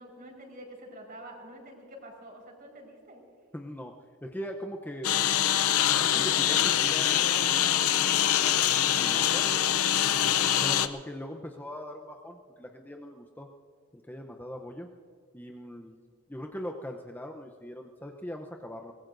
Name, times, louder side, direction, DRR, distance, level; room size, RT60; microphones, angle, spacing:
voice 1, 0.0-3.2, right 1 dB, 40° right, 0 dB, 4.9 m, -47 dB
voice 2, 3.5-3.9 4.2-5.1 5.9-7.9 9.0-9.6 10.6-13.5 14.0-14.9 15.3-16.0 16.3-18.9, equal, 10° left, 2 dB, 0.7 m, -40 dB
Engine, 5.0-10.9, left 11 dB, 85° left, 0.7 m, -24 dB
23.5 x 20.5 x 2.6 m, 2.3 s
head